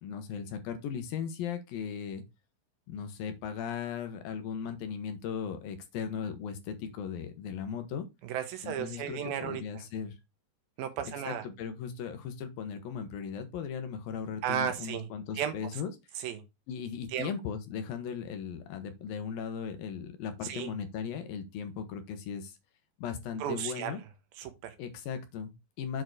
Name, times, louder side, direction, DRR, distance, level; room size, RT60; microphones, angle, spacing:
voice 1, 0.0-2.2 2.9-8.1 8.6-10.2 11.2-15.9 16.7-22.6 23.0-24.0 24.8-26.0, left 7 dB, 80° left, 2.8 m, -37 dB
voice 2, 8.2-9.8 10.8-11.5 14.4-15.1 15.4-15.5 16.2-16.4 17.1-17.3 20.4-20.7 23.4-24.0 24.4-24.8, right 9 dB, 90° right, 3.0 m, -34 dB
7.6 x 4.6 x 4.6 m
omnidirectional pair, 4.1 m